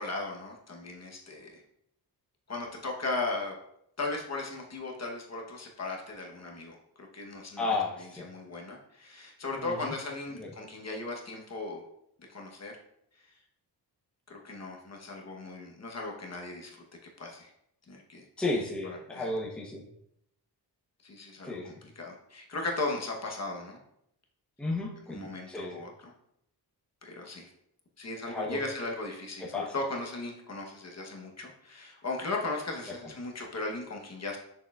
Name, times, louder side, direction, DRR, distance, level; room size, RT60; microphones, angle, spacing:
voice 1, 0.0-1.6 2.5-3.5 4.0-7.7 8.2-11.8 12.3-12.7 13.1-13.3 14.3-16.8 17.2-17.5 17.9-18.3 19.1-19.3 21.0-23.8 25.1-26.1 27.0-27.5 28.0-34.4, left 2 dB, 40° left, 0 dB, 1.0 m, -37 dB
voice 2, 7.6-8.3 9.6-9.9 10.4-10.5 18.4-19.9 21.4-21.8 24.6-25.8 28.3-28.6 29.4-29.8 33.0-33.1, left 2 dB, 5° left, -3 dB, 0.8 m, -33 dB
6.5 x 6.3 x 2.3 m, 0.76 s
wide cardioid pair, 170°, 41 cm